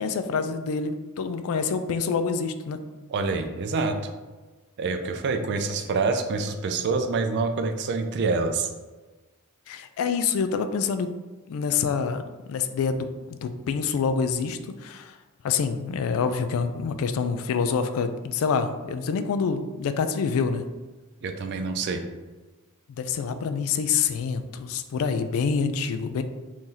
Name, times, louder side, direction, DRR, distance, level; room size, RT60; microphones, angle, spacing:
voice 1, 0.0-2.8 9.7-11.1 11.5-15.1 15.4-20.6 22.9-26.2, left 5 dB, 65° left, 10 dB, 0.3 m, -27 dB
voice 2, 3.1-4.0 4.8-8.7 21.2-22.0, right 4 dB, 50° right, 6 dB, 0.4 m, -26 dB
3.0 x 2.7 x 3.7 m, 1.2 s
head